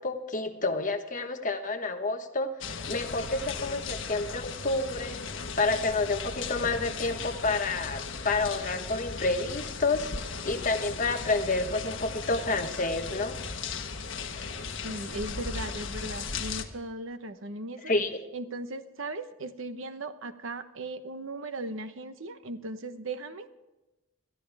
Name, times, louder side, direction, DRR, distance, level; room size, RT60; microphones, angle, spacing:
voice 1, 0.0-13.4 17.8-18.2, left 3 dB, 40° left, 6 dB, 1.3 m, -29 dB
sound 1, 2.6-16.7, left 5 dB, 60° left, 1.4 m, -37 dB
voice 2, 14.8-17.9 18.3-23.6, right 2 dB, 70° right, 9 dB, 1.1 m, -38 dB
21.5 x 13.5 x 3.5 m, 1.0 s
head